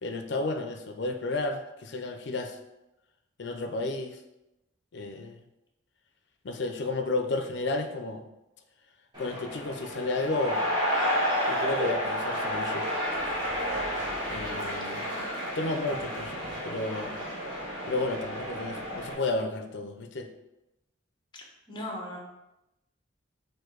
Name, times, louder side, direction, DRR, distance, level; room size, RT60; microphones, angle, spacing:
voice 1, 0.0-2.6 3.4-4.2 4.9-5.4 6.4-8.2 9.2-10.6 11.5-12.9 14.3-15.1 15.6-17.2 17.9-20.3, left 2 dB, 60° left, 6 dB, 0.5 m, -32 dB
sound 1, 9.1-19.1, equal, 20° right, 1.3 m, -31 dB
voice 2, 14.8-15.3 21.3-22.2, left 1 dB, 25° left, -1 dB, 0.9 m, -40 dB
4.3 x 2.6 x 4.6 m, 0.93 s
head